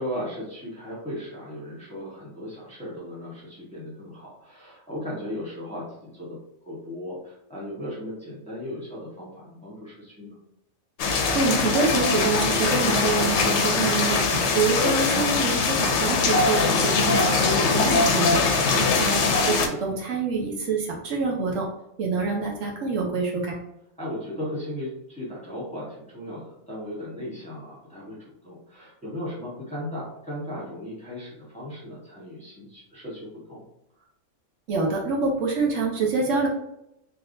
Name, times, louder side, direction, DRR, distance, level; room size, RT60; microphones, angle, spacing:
voice 1, 0.0-6.4 6.6-10.4 18.5-19.0 24.0-33.6 34.0-34.1, left 1 dB, 5° left, -7 dB, 1.1 m, -36 dB
sound 1, 11.0-19.7, left 4 dB, 65° left, 0.8 m, -22 dB
voice 2, 11.3-18.4 18.8-21.7 22.0-23.5 34.7-36.5, right 4 dB, 70° right, -1 dB, 1.1 m, -26 dB
3.5 x 2.8 x 2.6 m, 0.82 s
omnidirectional pair, 1.4 m